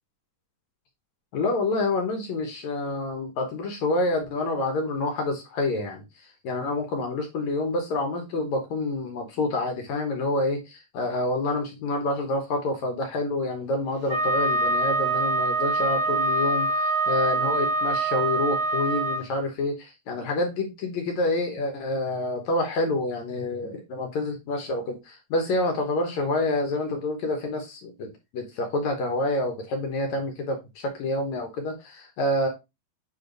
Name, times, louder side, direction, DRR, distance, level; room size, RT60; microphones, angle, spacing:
voice 1, 1.3-32.5, left 2 dB, 65° left, 2.0 m, -28 dB
Wind instrument woodwind instrument, 14.1-19.2, right 2 dB, 35° right, 2.6 m, -24 dB
8.6 x 3.5 x 3.9 m
omnidirectional pair, 4.4 m